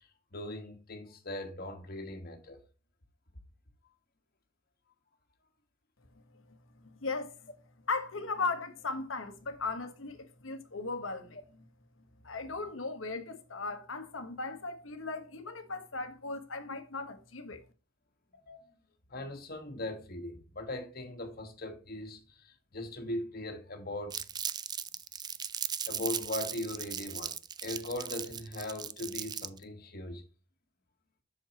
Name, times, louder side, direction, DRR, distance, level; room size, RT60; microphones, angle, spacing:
voice 1, 0.3-2.6 18.5-18.6 19.1-22.2 22.7-24.2 25.9-27.3 27.6-30.2, left 1 dB, 50° left, 1.6 m, -39 dB
voice 2, 6.8-7.5 7.9-11.4 12.2-17.6, left 3 dB, 80° left, 1.3 m, -37 dB
Crumpling crinkling, 24.1-29.6, right 8 dB, 20° right, 0.3 m, -37 dB
7.5 x 6.4 x 2.9 m
head